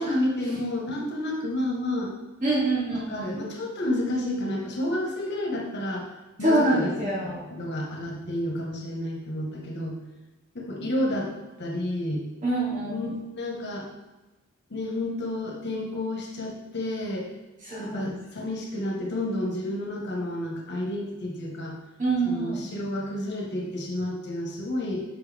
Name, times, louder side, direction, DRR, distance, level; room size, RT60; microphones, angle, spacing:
voice 1, 0.0-2.1 3.1-6.1 6.4-10.0 10.5-11.3 11.6-12.2 12.8-13.9 14.7-17.3 17.8-21.7 22.2-25.0, left 1 dB, 55° left, -1 dB, 1.6 m, -30 dB
voice 2, 2.4-3.4 6.4-7.5 12.4-13.0 17.6-18.1 22.0-22.6, right 2 dB, 40° right, -6 dB, 2.9 m, -26 dB
9.4 x 5.9 x 3.6 m, 1.1 s
head